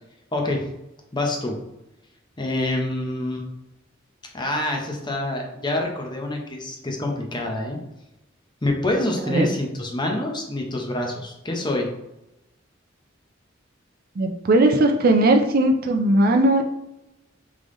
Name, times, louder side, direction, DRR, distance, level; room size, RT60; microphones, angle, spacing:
voice 1, 0.3-0.7 1.1-1.6 2.4-3.5 4.3-7.8 8.6-11.9, left 1 dB, 25° left, 1 dB, 0.8 m, -26 dB
voice 2, 14.2-16.6, right 1 dB, 50° right, 4 dB, 0.5 m, -18 dB
3.8 x 3.3 x 3.8 m, 0.89 s
head